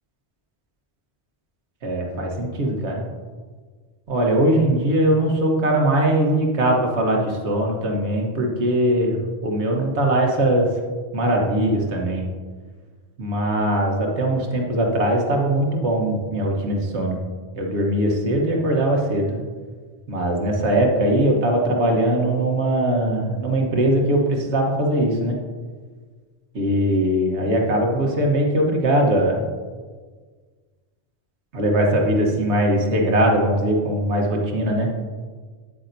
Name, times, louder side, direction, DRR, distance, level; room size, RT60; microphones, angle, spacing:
voice 1, 1.8-3.0 4.1-10.7 11.1-12.2 13.2-17.2 17.5-19.4 20.1-25.4 26.5-29.4 31.5-34.9, right 1 dB, 80° right, 1 dB, 1.5 m, -21 dB
9.3 x 8.5 x 2.6 m, 1.5 s
omnidirectional pair, 1.1 m